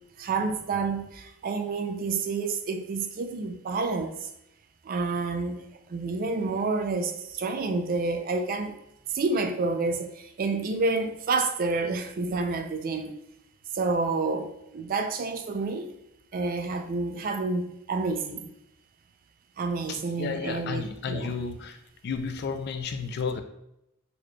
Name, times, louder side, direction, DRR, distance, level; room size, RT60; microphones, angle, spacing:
voice 1, 0.2-4.3 4.8-8.8 9.1-13.1 13.7-15.9 16.3-18.5 19.6-21.3, right 3 dB, 40° right, 6 dB, 0.3 m, -29 dB
voice 2, 19.9-21.8 22.0-23.4, left 5 dB, 50° left, 8 dB, 0.3 m, -32 dB
4.0 x 2.2 x 3.1 m, 0.81 s
head